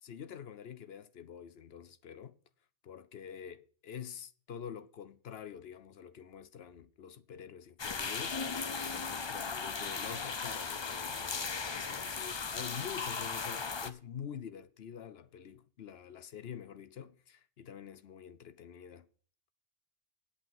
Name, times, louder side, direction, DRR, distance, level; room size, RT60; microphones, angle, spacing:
voice 1, 0.0-2.4 2.8-8.4 8.8-19.1, left 8 dB, 60° left, 0.9 m, -47 dB
sound 1, 7.8-13.9, left 5 dB, 40° left, 0.4 m, -37 dB
8.3 x 8.1 x 7.2 m
omnidirectional pair, 1.3 m